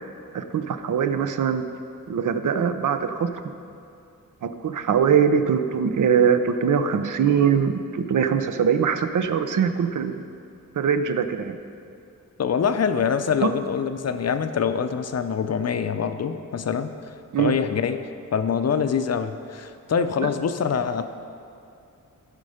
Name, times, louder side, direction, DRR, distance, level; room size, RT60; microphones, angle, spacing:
voice 1, 0.3-1.6 2.1-3.5 4.4-10.3 10.8-11.6 13.4-13.5 17.3-17.6, right 7 dB, 65° right, 9 dB, 0.7 m, -22 dB
voice 2, 12.4-16.9 17.4-18.0 18.3-21.0, left 6 dB, 50° left, 9 dB, 0.6 m, -24 dB
15.0 x 5.3 x 4.9 m, 2.6 s
wide cardioid pair, 95°, 34 cm